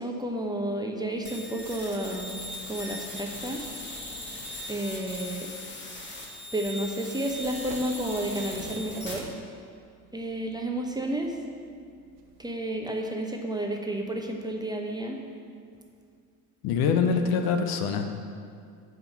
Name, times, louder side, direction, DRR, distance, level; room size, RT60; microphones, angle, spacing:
voice 1, 0.0-2.3 2.7-3.6 4.7-5.5 6.5-9.3 10.1-11.4 12.4-15.2, right 1 dB, 10° right, 1 dB, 0.9 m, -31 dB
sound 1, 1.3-9.1, left 1 dB, 25° left, 2.2 m, -39 dB
sound 2, 7.3-12.5, right 6 dB, 60° right, 0.9 m, -48 dB
voice 2, 16.6-18.2, left 6 dB, 50° left, 6 dB, 0.9 m, -25 dB
7.7 x 5.1 x 7.2 m, 2.3 s
figure-of-eight pair, 60°, 48 cm